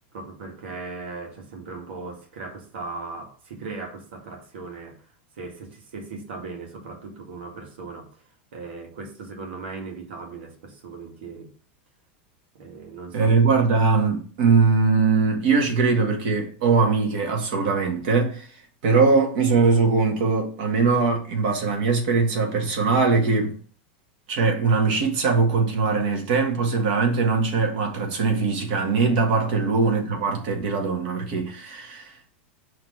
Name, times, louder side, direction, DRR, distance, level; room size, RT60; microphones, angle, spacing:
voice 1, 0.1-5.0 5.4-8.1 8.5-11.5 12.5-13.3 29.4-29.5, right 3 dB, 85° right, 1.9 m, -38 dB
voice 2, 13.1-18.5 18.8-23.5 24.3-32.3, right 4 dB, 50° right, 1.9 m, -21 dB
5.8 x 3.2 x 5.5 m
supercardioid pair, 170°, 6 cm